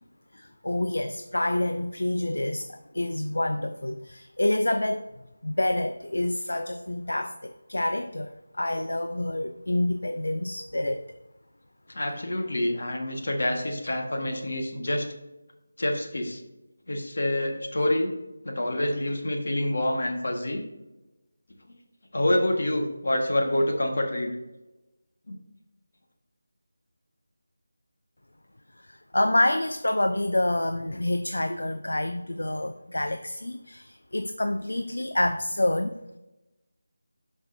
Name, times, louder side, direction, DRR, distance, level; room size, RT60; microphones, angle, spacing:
voice 1, 0.3-5.1 5.4-11.2 28.8-36.0, left 1 dB, 70° left, 8 dB, 0.5 m, -27 dB
voice 2, 11.9-15.1 15.8-16.4 16.9-18.2 18.4-20.6 22.1-24.3 25.3-25.4, left 1 dB, 55° left, 2 dB, 1.7 m, -27 dB
12.0 x 5.4 x 2.8 m, 0.99 s
figure-of-eight pair, 160°, 0 cm